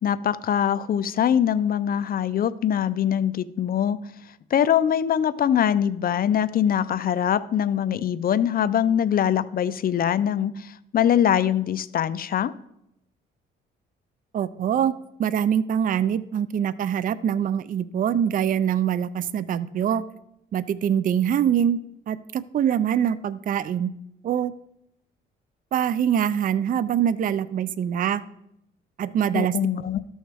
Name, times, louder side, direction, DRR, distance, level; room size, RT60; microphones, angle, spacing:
voice 1, 0.0-4.0 4.5-12.5 29.3-30.0, left 9 dB, 50° left, 16 dB, 0.5 m, -23 dB
voice 2, 14.3-14.9 15.2-20.0 20.5-21.8 22.1-23.9 24.2-24.5 25.7-28.2 29.0-29.6, right 9 dB, 45° right, 16 dB, 0.4 m, -24 dB
13.5 x 6.3 x 3.4 m, 0.80 s
cardioid pair, 90°, 20 cm